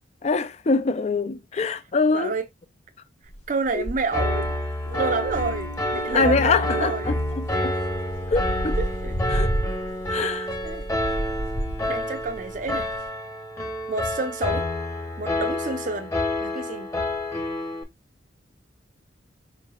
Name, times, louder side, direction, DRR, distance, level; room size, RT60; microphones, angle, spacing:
voice 1, 0.2-2.3 3.7-3.9 6.1-7.7 8.3-8.8 9.3-9.5 10.1-10.5, left 4 dB, 35° left, 0.4 m, -24 dB
voice 2, 2.1-2.4 3.5-4.6 4.9-7.2 8.8-9.1 10.2-10.3 10.6-10.9 11.9-12.9 13.9-14.7 15.2-16.1 16.4-16.9, right 3 dB, 45° right, 0.6 m, -29 dB
sound 1, 3.3-3.4 3.7-4.5 4.9-6.2 7.1-13.1, equal, 70° left, 2.4 m, -30 dB
Piano, 4.1-17.8, left 1 dB, 20° left, 0.9 m, -28 dB
4.9 x 4.5 x 2.3 m
head